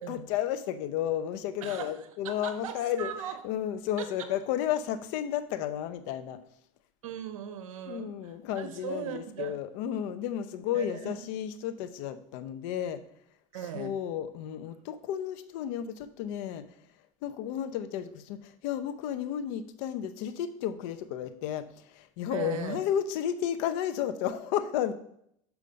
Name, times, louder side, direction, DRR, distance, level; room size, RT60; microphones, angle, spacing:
voice 1, 0.0-3.1 3.4-6.4 7.9-13.0 13.7-16.7 17.2-24.9, left 10 dB, 70° left, 12 dB, 0.7 m, -32 dB
voice 2, 1.6-3.4 4.0-4.3 7.0-9.6 10.7-11.3 13.5-13.9 22.3-22.8, right 9 dB, 90° right, 9 dB, 0.7 m, -39 dB
7.0 x 4.9 x 5.2 m, 0.71 s
supercardioid pair, 105°, 17 cm